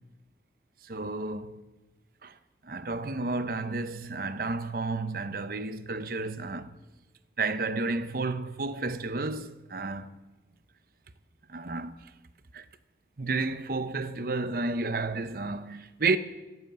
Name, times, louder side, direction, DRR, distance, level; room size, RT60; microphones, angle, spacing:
voice 1, 0.8-1.6 2.2-2.4 2.6-6.7 7.4-10.1 11.5-12.1 12.5-12.7 13.2-16.2, right 3 dB, 50° right, 0.7 m, -31 dB
15.0 x 7.9 x 8.8 m
head